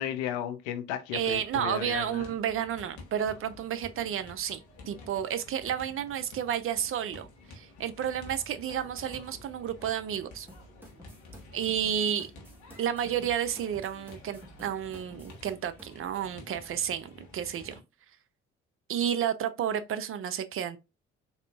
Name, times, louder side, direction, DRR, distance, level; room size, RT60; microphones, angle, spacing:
voice 1, 0.0-2.3, left 10 dB, 75° left, 0.6 m, -34 dB
sound 1, 1.1-17.8, left 2 dB, 60° left, 1.2 m, -51 dB
voice 2, 1.1-10.5 11.5-12.3 12.8-17.8 18.9-20.8, right 9 dB, 40° right, 0.5 m, -31 dB
sound 2, 10.5-15.9, right 1 dB, 5° right, 1.3 m, -52 dB
3.6 x 2.7 x 2.3 m
hypercardioid pair, 45°, 33 cm